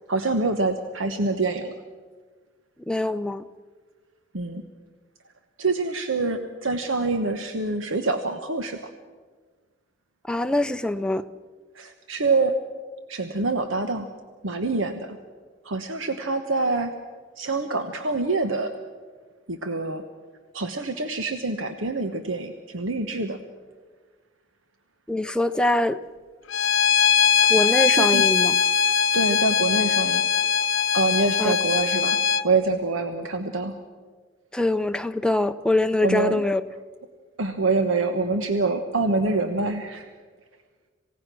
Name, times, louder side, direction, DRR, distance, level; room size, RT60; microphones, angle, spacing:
voice 1, 0.1-1.7 4.3-4.6 5.6-8.8 11.7-12.5 13.1-14.1 14.4-15.2 15.6-16.9 17.4-18.7 19.5-20.0 20.5-23.4 27.9-28.3 29.1-30.2 30.9-32.2 32.4-33.8 36.0-36.4 37.4-40.1, right 3 dB, 80° right, 7 dB, 1.1 m, -25 dB
voice 2, 2.9-3.4 10.3-11.2 25.1-26.0 27.5-28.5 31.4-31.5 34.5-36.6, left 1 dB, 5° left, 9 dB, 0.5 m, -23 dB
Bowed string instrument, 26.5-32.4, left 7 dB, 80° left, 0.8 m, -21 dB
27.5 x 17.0 x 6.2 m, 1.5 s
head